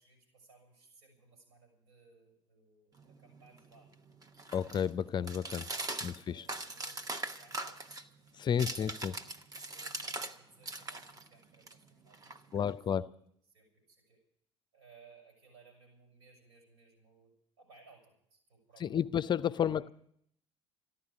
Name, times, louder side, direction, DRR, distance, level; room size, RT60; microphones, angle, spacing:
voice 1, 0.0-3.9 5.2-8.0 8.5-9.3 9.7-13.1 13.5-14.2 14.7-19.1 19.6-19.9, right 4 dB, 80° right, 6.0 m, -62 dB
sound 1, 3.0-10.4 10.6-12.8, right 2 dB, 25° right, 1.1 m, -42 dB
voice 2, 4.5-5.6 6.0-6.4 8.4-9.1 12.5-13.1 18.8-19.9, left 8 dB, 30° left, 0.5 m, -31 dB
14.0 x 11.5 x 8.4 m
figure-of-eight pair, 60°, 14 cm